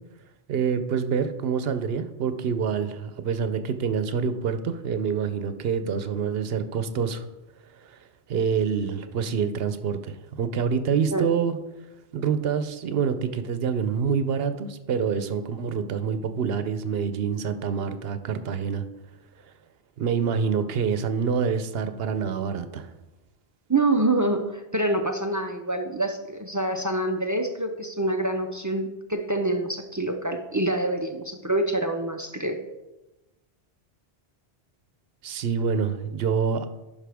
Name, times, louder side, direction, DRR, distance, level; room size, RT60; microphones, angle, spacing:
voice 1, 0.5-7.2 7.8-8.0 8.3-11.6 12.1-18.8 20.0-22.9 35.2-36.7, right 6 dB, 75° right, 10 dB, 0.8 m, -26 dB
voice 2, 23.7-32.6, right 2 dB, 25° right, 5 dB, 0.4 m, -26 dB
11.0 x 5.4 x 3.4 m, 1.0 s
omnidirectional pair, 1.0 m